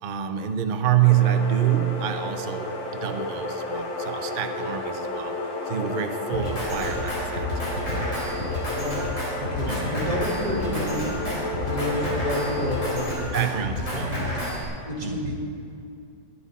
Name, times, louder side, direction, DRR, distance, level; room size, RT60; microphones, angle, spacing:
voice 1, 0.0-5.4 5.7-7.5 9.7-9.9 13.3-14.2 15.0-15.2, right 10 dB, 85° right, 7 dB, 0.4 m, -26 dB
sound 1, 1.0-13.1, left 2 dB, 90° left, 2.2 m, -32 dB
Drum kit, 6.3-14.6, left 1 dB, 40° left, 4.6 m, -30 dB
voice 2, 8.7-9.2 9.5-11.1 11.6-14.4 14.8-15.3, equal, 65° right, -2 dB, 3.0 m, -31 dB
21.5 x 9.8 x 4.2 m, 2.5 s
omnidirectional pair, 1.9 m